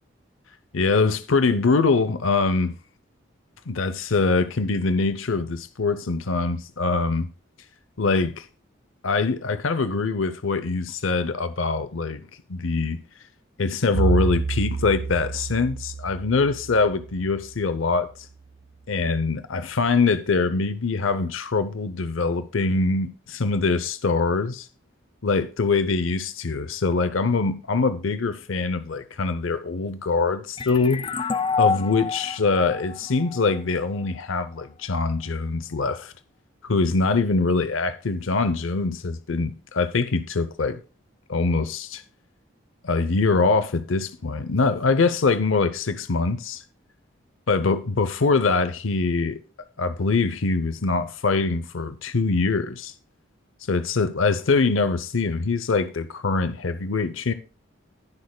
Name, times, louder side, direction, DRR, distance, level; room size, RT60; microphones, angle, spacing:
voice 1, 0.7-2.7 3.7-7.3 8.0-8.5 9.0-12.2 12.5-13.0 13.6-18.1 18.9-24.7 25.2-31.3 31.6-36.1 36.6-40.8 41.3-42.0 42.8-46.6 47.5-49.4 49.8-52.9 53.7-57.3, left 3 dB, 90° left, 0.7 m, -23 dB
Bowed string instrument, 13.9-18.1, right 4 dB, 60° right, 0.4 m, -29 dB
sound 1, 30.6-34.0, left 5 dB, 25° left, 0.4 m, -27 dB
19.5 x 6.5 x 2.2 m
head